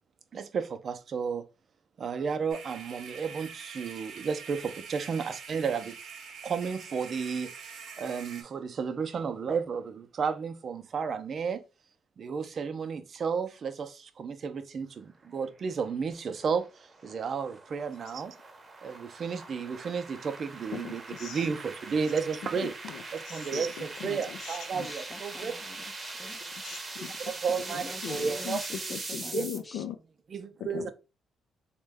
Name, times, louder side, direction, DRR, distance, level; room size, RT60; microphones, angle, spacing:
voice 1, 0.3-1.4 2.0-5.9 6.4-11.6 12.2-18.3 18.8-22.7 23.1-25.5 27.3-28.6 29.3-29.4 30.3-30.9, right 6 dB, 50° right, 0.5 m, -33 dB
sound 1, 2.5-8.4, right 6 dB, 65° right, 0.9 m, -45 dB
sound 2, 15.6-29.6, right 3 dB, 30° right, 0.8 m, -42 dB
voice 2, 20.7-21.5 22.6-24.9 26.6-27.3 27.7-28.6 28.9-30.0 30.7-30.9, left 9 dB, 85° left, 0.3 m, -40 dB
voice 3, 24.7-26.4 27.5-28.8 29.1-29.9, left 2 dB, 25° left, 0.5 m, -46 dB
3.0 x 2.2 x 3.4 m
cardioid pair, 90°, 0 cm